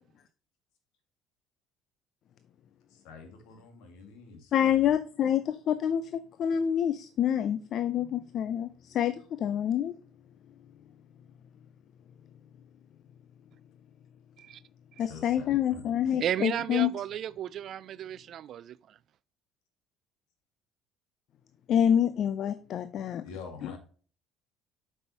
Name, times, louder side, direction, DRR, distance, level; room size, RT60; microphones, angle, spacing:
voice 1, 2.9-4.9 15.0-16.2 23.2-23.8, left 5 dB, 75° left, 1.9 m, -47 dB
voice 2, 4.5-9.9 15.0-16.9 21.7-23.2, left 9 dB, 60° left, 0.4 m, -27 dB
voice 3, 16.2-18.8, right 10 dB, 55° right, 0.3 m, -33 dB
7.8 x 5.5 x 2.9 m
hypercardioid pair, 70°, 0 cm